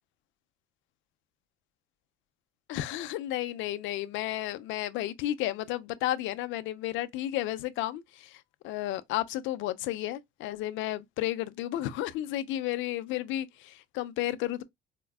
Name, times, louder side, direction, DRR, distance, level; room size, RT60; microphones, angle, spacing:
voice 1, 2.7-14.6, left 14 dB, 75° left, 0.4 m, -32 dB
4.3 x 2.3 x 2.3 m
supercardioid pair, 85°, 20 cm